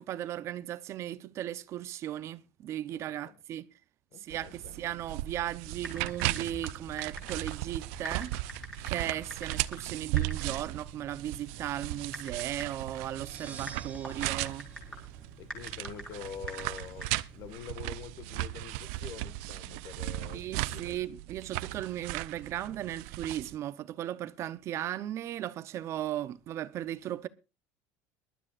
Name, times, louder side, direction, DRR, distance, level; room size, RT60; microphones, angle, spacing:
voice 1, 0.0-3.7 4.2-8.3 8.9-14.7 20.3-27.3, right 12 dB, 40° right, 0.7 m, -36 dB
voice 2, 2.9-3.4 4.1-4.8 15.4-21.1 21.7-21.8, left 8 dB, 45° left, 1.6 m, -46 dB
sound 1, 4.3-23.6, right 18 dB, 85° right, 0.6 m, -37 dB
Typing, 5.6-17.6, equal, 10° left, 4.6 m, -46 dB
sound 2, 13.0-15.9, right 5 dB, 20° right, 1.2 m, -51 dB
22.5 x 12.0 x 2.5 m
cardioid pair, 155°, 7 cm